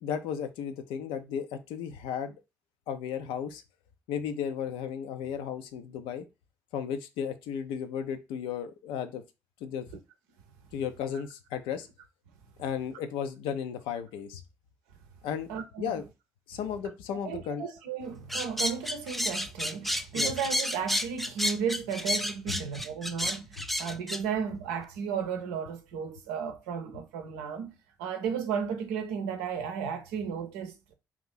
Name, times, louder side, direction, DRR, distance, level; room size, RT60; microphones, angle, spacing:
voice 1, 0.0-2.4 2.9-3.6 4.1-6.3 6.7-9.2 9.6-9.9 10.7-11.9 12.6-14.4 15.2-15.5 15.8-16.0 16.5-17.6 20.1-20.3 22.5-22.6 23.6-23.7, left 8 dB, 70° left, 0.5 m, -34 dB
voice 2, 15.5-15.9 17.2-30.9, right 7 dB, 75° right, 0.6 m, -34 dB
sound 1, 18.3-24.2, left 1 dB, ahead, 0.3 m, -30 dB
3.0 x 2.6 x 3.8 m
figure-of-eight pair, 40°, 9 cm